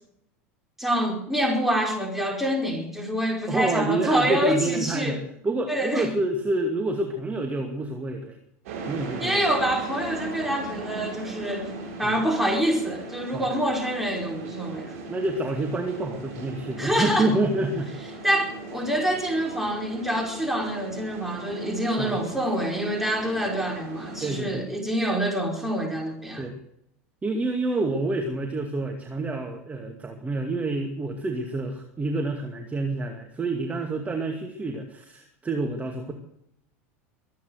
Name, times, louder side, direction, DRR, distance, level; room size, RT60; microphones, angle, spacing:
voice 1, 0.8-5.2 5.7-6.1 9.2-11.7 12.0-14.9 16.8-17.3 18.2-26.4, equal, 5° right, 1 dB, 5.0 m, -26 dB
voice 2, 3.5-5.2 5.4-8.4 8.9-9.4 12.0-12.2 13.3-13.5 15.1-17.9 22.0-22.2 24.2-24.7 26.4-26.6 27.2-36.1, right 2 dB, 20° right, 4 dB, 2.3 m, -28 dB
sound 1, 8.7-24.4, right 3 dB, 75° right, 6.7 m, -38 dB
23.0 x 9.4 x 6.6 m, 0.75 s
hypercardioid pair, 90°, 8 cm